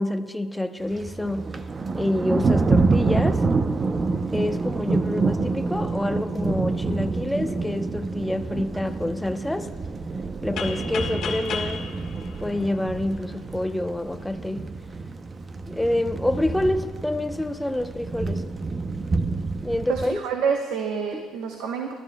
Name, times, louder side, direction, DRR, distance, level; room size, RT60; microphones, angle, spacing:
voice 1, 0.0-1.5 1.9-3.5 4.3-9.7 10.4-11.9 12.4-14.7 15.7-18.4 19.6-20.2 21.1-21.2, left 1 dB, 5° left, 0.8 m, -27 dB
Thunder, 0.9-20.1, right 3 dB, 30° right, 0.6 m, -27 dB
sound 1, 10.6-13.3, left 6 dB, 65° left, 1.5 m, -33 dB
voice 2, 19.9-21.9, right 6 dB, 80° right, 1.0 m, -27 dB
25.5 x 13.0 x 2.2 m
cardioid pair, 95°, 0 cm